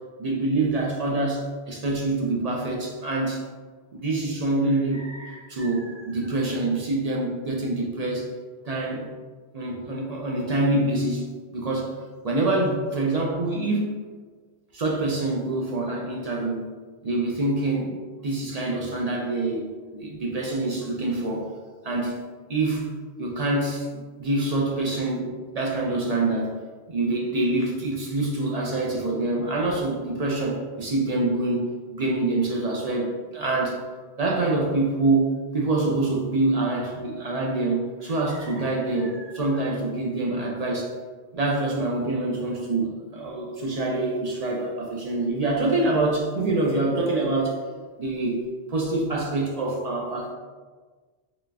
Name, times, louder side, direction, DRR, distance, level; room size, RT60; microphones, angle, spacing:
voice 1, 0.2-1.4 1.7-3.4 3.9-8.3 8.6-9.1 9.5-11.9 12.2-13.9 14.7-16.7 17.0-18.0 18.2-21.5 21.8-22.2 22.5-22.9 23.2-26.6 26.9-33.8 34.2-35.2 35.5-40.9 41.3-47.5 48.0-48.4 48.7-50.3, right 2 dB, 50° right, -2 dB, 0.5 m, -26 dB
3.8 x 2.4 x 3.3 m, 1.4 s
omnidirectional pair, 1.1 m